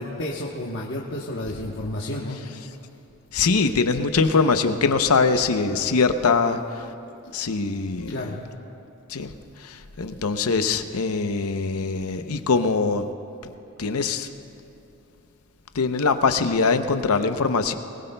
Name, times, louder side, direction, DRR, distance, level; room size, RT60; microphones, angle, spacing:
voice 1, 0.0-2.4 8.1-8.4, left 1 dB, 60° left, -3 dB, 1.1 m, -31 dB
voice 2, 3.3-6.9 7.3-8.1 9.1-9.3 9.6-13.1 13.8-14.3 15.7-17.7, left 4 dB, 80° left, 9 dB, 0.7 m, -22 dB
21.5 x 20.0 x 2.3 m, 2.9 s
head